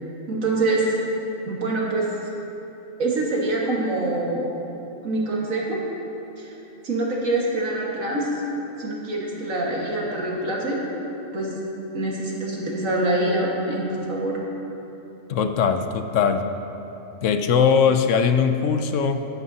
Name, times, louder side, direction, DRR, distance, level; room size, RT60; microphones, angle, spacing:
voice 1, 0.3-0.9 1.5-2.1 3.0-4.4 5.0-5.8 6.4-6.5 6.8-8.3 8.8-10.8 11.3-11.6 11.9-14.4, right 2 dB, 75° right, -3 dB, 2.1 m, -25 dB
voice 2, 15.3-16.5 17.2-19.3, left 6 dB, 70° left, 8 dB, 0.9 m, -20 dB
15.0 x 11.5 x 2.8 m, 3.0 s
omnidirectional pair, 1.4 m